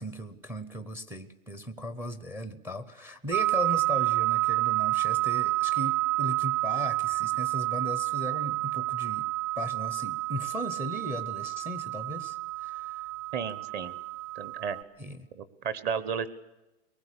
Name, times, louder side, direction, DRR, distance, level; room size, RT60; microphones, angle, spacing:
voice 1, 0.0-9.2 9.6-13.1 15.0-15.3, left 1 dB, 5° right, 11 dB, 0.7 m, -37 dB
sound 1, 3.3-14.8, right 19 dB, 45° right, 1.8 m, -29 dB
voice 2, 13.3-13.9 14.4-14.8 15.3-16.3, right 7 dB, 25° right, 15 dB, 1.1 m, -33 dB
23.0 x 20.0 x 8.4 m, 1.0 s
hypercardioid pair, 150°, 38 cm